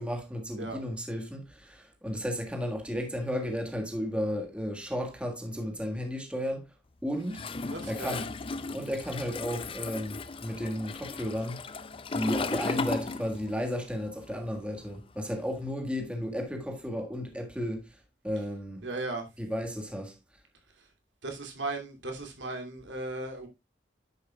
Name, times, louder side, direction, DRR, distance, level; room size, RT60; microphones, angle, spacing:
voice 1, 0.0-6.7 7.0-7.4 7.9-8.3 8.7-11.6 12.1-18.0 18.2-18.9 19.4-20.1, equal, 5° right, 1.6 m, -33 dB
Toilet flush, 7.3-13.7 14.0-15.6, left 3 dB, 30° left, 0.5 m, -36 dB
voice 2, 7.7-8.2 18.8-19.3 21.2-23.5, right 2 dB, 80° right, 2.7 m, -36 dB
10.0 x 7.6 x 2.3 m
head